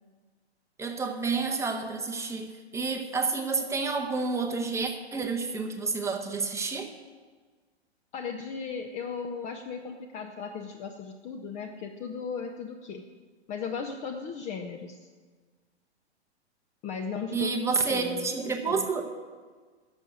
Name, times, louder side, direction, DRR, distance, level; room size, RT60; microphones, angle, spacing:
voice 1, 0.8-6.9 17.3-19.0, right 4 dB, 10° right, 3 dB, 1.0 m, -29 dB
voice 2, 8.1-13.0 13.5-15.1 16.8-18.3 18.7-18.8, left 6 dB, 20° left, 4 dB, 0.6 m, -36 dB
10.0 x 7.2 x 9.3 m, 1.5 s
hypercardioid pair, 125°, 34 cm